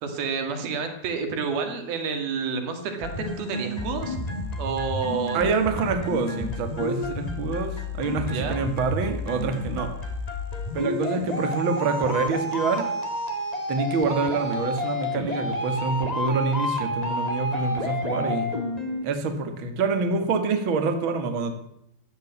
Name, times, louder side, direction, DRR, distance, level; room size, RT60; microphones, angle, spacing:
voice 1, 0.0-4.2 4.6-5.4 8.3-8.6, right 5 dB, 90° right, 6 dB, 4.0 m, -29 dB
sound 1, 3.0-19.0, left 1 dB, 20° left, 1.0 m, -30 dB
voice 2, 5.3-9.9 10.7-12.9 13.7-18.5 19.0-21.5, right 4 dB, 40° right, 6 dB, 2.1 m, -26 dB
15.0 x 10.5 x 8.3 m, 0.78 s
omnidirectional pair, 4.2 m